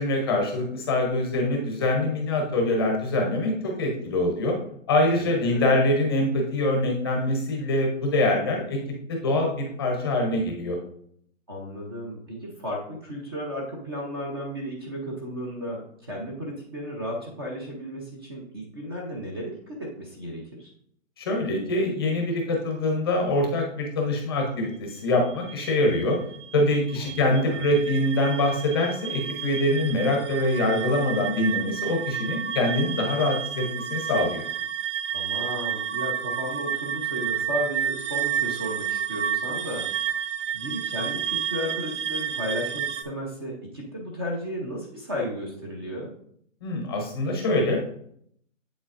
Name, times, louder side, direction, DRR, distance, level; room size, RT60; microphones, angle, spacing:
voice 1, 0.0-4.6 4.9-8.8 9.1-10.8 21.2-26.2 26.5-34.4 46.6-47.9, left 1 dB, 20° left, 2 dB, 0.7 m, -24 dB
voice 2, 5.1-5.7 11.5-20.7 27.0-27.8 35.1-39.9 40.5-46.1, equal, 20° right, -1 dB, 0.6 m, -34 dB
sound 1, 25.2-43.0, right 9 dB, 60° right, 0.7 m, -31 dB
7.9 x 7.0 x 2.5 m, 0.67 s
hypercardioid pair, 165°, 39 cm